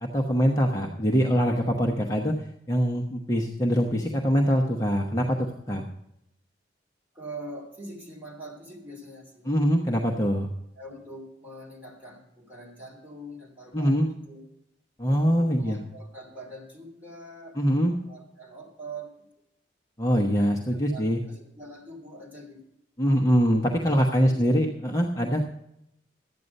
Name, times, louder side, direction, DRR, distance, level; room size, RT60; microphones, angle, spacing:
voice 1, 0.0-5.8 9.5-10.5 13.7-14.1 15.0-15.8 17.6-17.9 20.0-21.2 23.0-25.4, equal, 20° left, 0 dB, 1.0 m, -23 dB
voice 2, 7.1-9.5 10.7-14.5 15.3-17.6 17.9-19.1 20.5-22.7 24.2-24.4, right 1 dB, 10° right, -1 dB, 3.1 m, -43 dB
12.5 x 9.5 x 5.3 m, 0.79 s
head